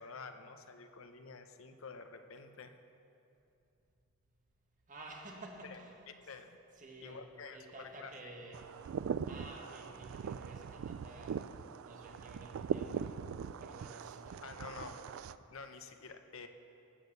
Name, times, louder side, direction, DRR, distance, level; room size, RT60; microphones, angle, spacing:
voice 1, 0.0-2.7 5.7-5.8 6.3-6.6 7.0-8.1 14.4-14.9 15.5-16.5, left 4 dB, 65° left, 8 dB, 0.8 m, -49 dB
voice 2, 4.9-6.3 6.7-7.2 7.5-8.7 9.2-11.4 11.8-14.8, right 1 dB, 40° right, 0 dB, 1.6 m, -52 dB
sound 1, 8.5-15.4, right 7 dB, 70° right, 0.3 m, -41 dB
15.0 x 6.5 x 6.6 m, 2.7 s
head